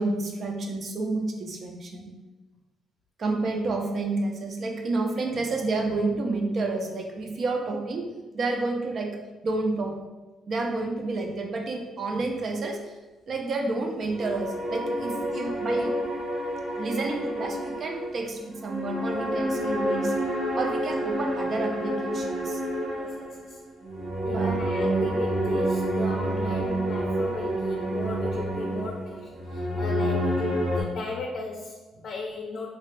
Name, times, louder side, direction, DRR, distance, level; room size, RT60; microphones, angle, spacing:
voice 1, 0.0-2.1 3.2-8.1 8.3-9.2 9.4-10.0 10.5-12.9 13.3-16.0 16.8-20.2 20.6-22.6 24.3-24.5, right 3 dB, 50° right, 2 dB, 0.5 m, -30 dB
sound 1, 14.1-30.8, right 1 dB, 70° right, 1.2 m, -28 dB
voice 2, 22.9-23.6 24.2-32.7, left 3 dB, 60° left, 0 dB, 0.5 m, -36 dB
3.2 x 2.6 x 3.2 m, 1.2 s
cardioid pair, 90°, 0 cm